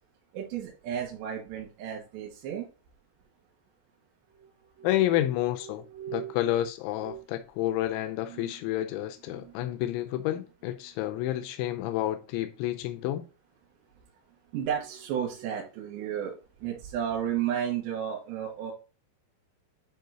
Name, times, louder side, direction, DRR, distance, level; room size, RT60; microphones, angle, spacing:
voice 1, 0.3-2.7 4.3-4.5 4.8-5.2 5.9-6.3 7.0-7.2 8.3-8.5 9.3-9.7 14.5-18.7, right 9 dB, 75° right, 3.6 m, -33 dB
voice 2, 4.8-5.9 6.1-13.3, left 13 dB, 90° left, 3.0 m, -29 dB
11.0 x 4.7 x 2.9 m
omnidirectional pair, 5.2 m